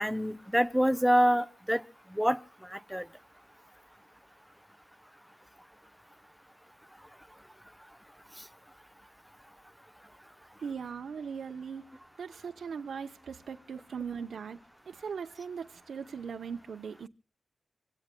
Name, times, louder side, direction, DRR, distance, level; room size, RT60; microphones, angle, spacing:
voice 1, 0.0-1.8 2.1-2.4 2.7-3.1, equal, ahead, 0.6 m, -26 dB
voice 2, 10.6-14.6 14.9-17.1, right 6 dB, 80° right, 0.8 m, -39 dB
26.0 x 17.0 x 2.2 m
wide cardioid pair, 135°, 0 cm